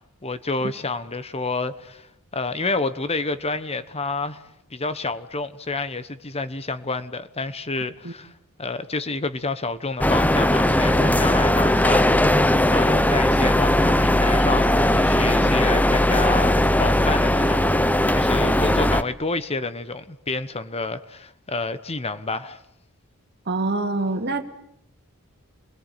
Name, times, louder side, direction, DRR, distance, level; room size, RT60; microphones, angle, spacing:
voice 1, 0.0-8.3 8.6-12.4 12.7-17.8 18.1-22.6, left 3 dB, 25° left, 1.2 m, -29 dB
sound 1, 10.0-19.0, left 1 dB, 5° left, 1.0 m, -19 dB
voice 2, 23.5-24.4, right 2 dB, 50° right, 2.4 m, -25 dB
29.5 x 21.5 x 9.2 m
head